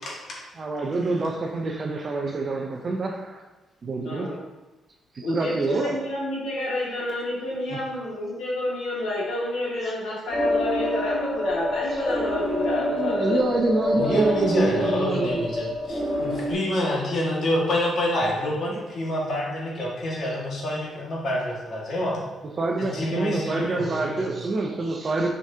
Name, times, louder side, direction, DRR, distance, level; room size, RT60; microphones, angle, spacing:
voice 1, 0.0-0.5 13.9-22.2 22.8-24.3, left 1 dB, 55° left, -3 dB, 1.7 m, -28 dB
voice 2, 0.6-3.4 3.8-4.3 5.1-6.0 12.8-15.5 22.6-25.3, right 3 dB, 35° right, 2 dB, 0.6 m, -26 dB
voice 3, 4.0-4.4 5.2-13.4, left 1 dB, 80° left, -5 dB, 2.0 m, -29 dB
sound 1, 10.3-16.5, left 1 dB, 20° right, 1.6 m, -27 dB
6.7 x 5.0 x 2.8 m, 1.1 s
cardioid pair, 145°, 0 cm